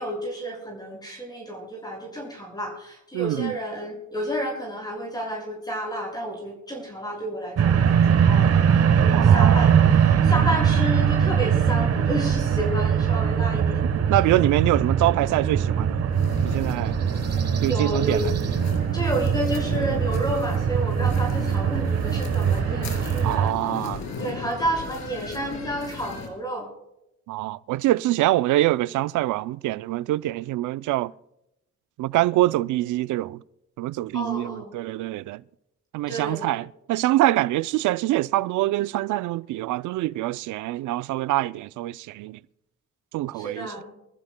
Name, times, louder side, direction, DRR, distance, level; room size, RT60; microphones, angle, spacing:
voice 1, 0.0-14.2 17.7-18.2 18.9-23.5 24.2-26.7 34.1-34.7 36.1-36.5 43.3-43.9, right 1 dB, 15° left, 6.0 m, -31 dB
voice 2, 3.1-3.5 9.1-9.6 13.9-16.1 16.4-17.0 17.6-18.2 23.2-24.0 27.3-31.1 32.0-33.4 33.8-35.4 35.9-42.4 43.1-43.7, right 16 dB, 80° right, 0.5 m, -25 dB
sound 1, 7.6-23.5, right 7 dB, 55° right, 1.2 m, -21 dB
sound 2, 16.1-26.3, left 4 dB, 65° left, 3.3 m, -37 dB
25.5 x 14.5 x 2.2 m
cardioid pair, 90°, 30 cm